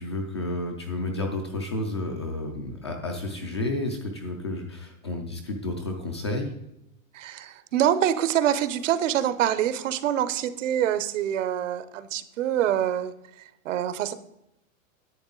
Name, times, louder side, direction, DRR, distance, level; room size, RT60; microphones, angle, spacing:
voice 1, 0.0-6.5, left 2 dB, 25° left, 2 dB, 0.3 m, -31 dB
voice 2, 7.1-13.1 13.6-14.1, right 10 dB, 65° right, 13 dB, 0.9 m, -25 dB
10.5 x 8.0 x 3.8 m, 0.86 s
supercardioid pair, 180°, 40 cm